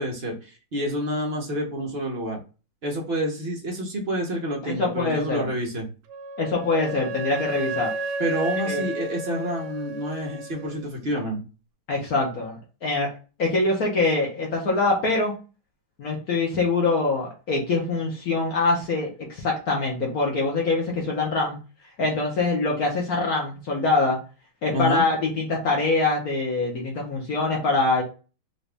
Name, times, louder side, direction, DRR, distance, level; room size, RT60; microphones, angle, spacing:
voice 1, 0.0-2.4 2.8-5.9 8.2-11.4 24.7-25.0, equal, 55° right, 0 dB, 0.7 m, -28 dB
voice 2, 4.6-5.5 6.4-7.9 8.7-8.8 11.9-13.1 13.4-15.3 16.0-21.6 22.0-24.2 24.6-28.0, left 3 dB, 55° left, -1 dB, 1.2 m, -24 dB
Wind instrument woodwind instrument, 6.1-10.7, right 2 dB, 75° right, 1.1 m, -32 dB
4.0 x 2.5 x 3.3 m, 0.33 s
omnidirectional pair, 2.2 m